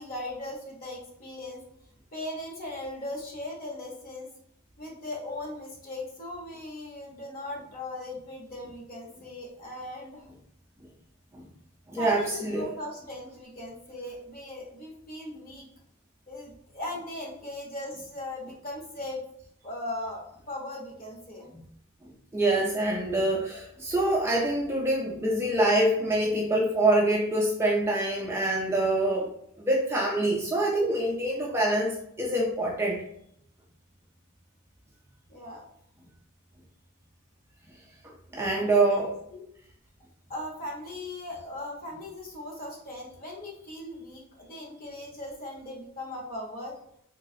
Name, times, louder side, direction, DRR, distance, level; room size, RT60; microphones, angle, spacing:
voice 1, 0.0-1.6 2.1-4.3 4.8-10.3 12.0-15.7 16.3-19.2 19.6-21.5 35.3-35.6 38.4-39.0 39.3-39.4 40.3-46.7, left 1 dB, 40° left, -2 dB, 0.9 m, -38 dB
voice 2, 11.9-12.7 22.0-29.3 29.6-33.0 38.0-39.2, right 1 dB, 10° right, -2 dB, 0.3 m, -25 dB
3.1 x 2.8 x 2.6 m, 0.70 s
head